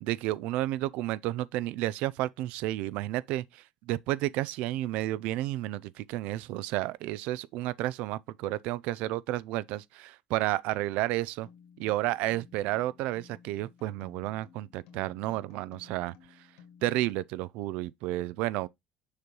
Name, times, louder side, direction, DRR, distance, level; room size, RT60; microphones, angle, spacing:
voice 1, 0.0-11.5 11.8-16.1 16.8-18.7, right 16 dB, 75° right, 0.4 m, -31 dB
sound 1, 11.4-17.2, left 7 dB, 90° left, 1.8 m, -56 dB
6.5 x 3.0 x 5.3 m
cardioid pair, 125°, 2 cm